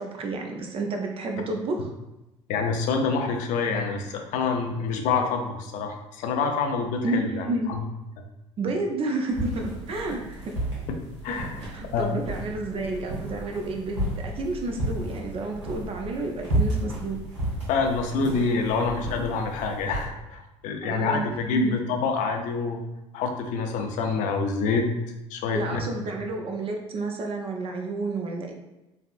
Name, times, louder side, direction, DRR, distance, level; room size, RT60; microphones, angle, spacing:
voice 1, 0.0-1.9 7.0-7.7 8.6-10.6 11.6-17.2 20.8-21.8 25.5-28.5, right 2 dB, 40° right, 2 dB, 0.5 m, -30 dB
voice 2, 2.5-7.8 10.9-11.0 11.2-11.6 11.9-12.1 17.7-22.8 23.1-24.9 25.3-25.8, left 4 dB, 55° left, 4 dB, 0.5 m, -27 dB
sound 1, 9.3-20.0, right 1 dB, 90° right, 1.0 m, -32 dB
3.3 x 2.5 x 2.4 m, 0.98 s
hypercardioid pair, 70°, 15 cm